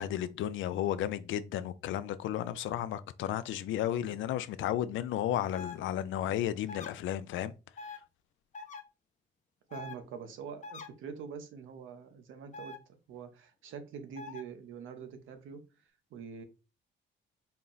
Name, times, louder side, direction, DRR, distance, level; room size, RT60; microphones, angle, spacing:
voice 1, 0.0-7.5, left 11 dB, 75° left, 0.4 m, -33 dB
sound 1, 5.5-5.7 6.7-6.9 7.8-8.0 8.5-8.8 9.7-10.0 10.6-10.9 12.5-12.8 14.2-14.4, left 4 dB, 40° left, 0.7 m, -43 dB
voice 2, 9.7-15.6 16.1-16.4, right 6 dB, 80° right, 0.8 m, -45 dB
4.3 x 2.0 x 3.8 m
cardioid pair, 90°, 20 cm